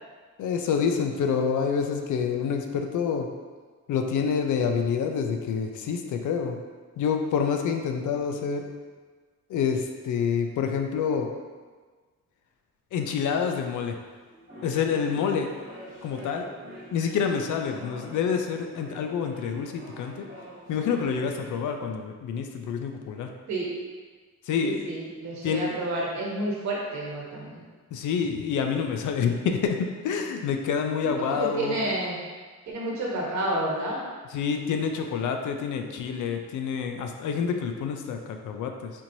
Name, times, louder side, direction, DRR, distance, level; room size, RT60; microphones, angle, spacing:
voice 1, 0.4-3.3 3.9-6.6 7.0-8.6 9.5-11.3 12.9-13.9 14.6-15.5 16.0-20.3 20.7-23.3 24.5-24.8 25.4-25.7 27.9-29.8 30.0-31.7 34.3-38.9, left 6 dB, 70° left, 4 dB, 0.4 m, -27 dB
sound 1, 14.2-21.6, right 1 dB, 25° right, 1.3 m, -45 dB
voice 2, 24.6-27.6 31.2-32.2 32.7-34.0, right 1 dB, 60° right, -4 dB, 1.1 m, -30 dB
4.3 x 2.9 x 2.6 m, 1.4 s
wide cardioid pair, 155°, 32 cm